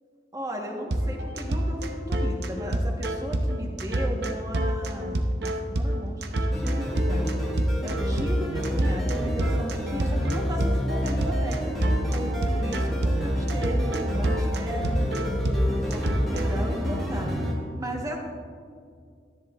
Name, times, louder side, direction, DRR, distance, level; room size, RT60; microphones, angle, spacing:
voice 1, 0.3-11.6 12.1-18.2, equal, 20° right, 0 dB, 1.2 m, -36 dB
sound 1, 0.9-16.6, right 1 dB, 65° right, 0.7 m, -27 dB
sound 2, 6.5-17.5, equal, ahead, 1.5 m, -28 dB
13.0 x 10.5 x 2.4 m, 2.3 s
head